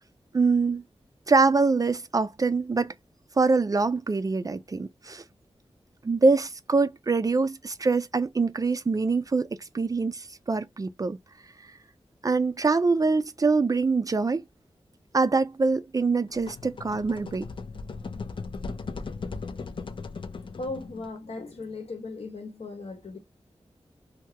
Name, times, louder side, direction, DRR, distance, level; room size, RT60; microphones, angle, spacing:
voice 1, 0.3-0.8 1.3-2.9 3.4-5.2 6.0-9.5 9.7-11.2 12.2-14.4 15.1-17.5, right 4 dB, 35° right, 0.4 m, -24 dB
sound 1, 16.3-21.2, left 4 dB, 50° left, 0.4 m, -37 dB
voice 2, 20.6-23.2, left 3 dB, 75° left, 1.1 m, -37 dB
2.9 x 2.2 x 3.2 m
wide cardioid pair, 110°, 11 cm